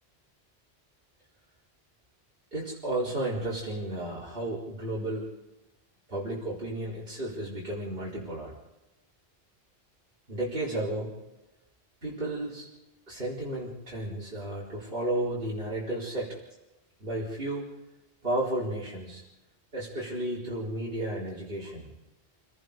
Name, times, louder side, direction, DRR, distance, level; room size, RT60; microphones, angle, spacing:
voice 1, 2.5-5.3 6.1-8.5 10.3-11.1 12.0-12.7 13.1-16.4 17.0-17.6 18.2-19.2 19.7-21.9, right 1 dB, 55° right, -7 dB, 4.6 m, -33 dB
28.0 x 19.0 x 5.3 m, 1.0 s
omnidirectional pair, 1.1 m